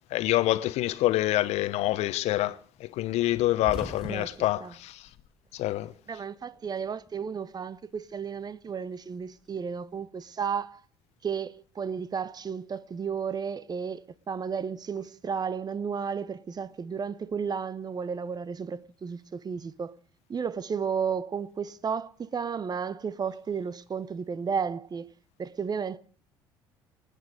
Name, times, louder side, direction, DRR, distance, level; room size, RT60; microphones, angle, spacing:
voice 1, 0.1-5.0 5.5-5.9, left 16 dB, 60° left, 0.9 m, -26 dB
sound 1, 3.6-5.9 6.2-7.2 8.4-9.9, equal, 5° right, 5.8 m, -43 dB
voice 2, 6.1-10.8 11.2-19.9 20.3-25.1 25.4-26.0, right 6 dB, 30° right, 0.9 m, -33 dB
26.5 x 9.3 x 4.9 m
figure-of-eight pair, 55°, 13 cm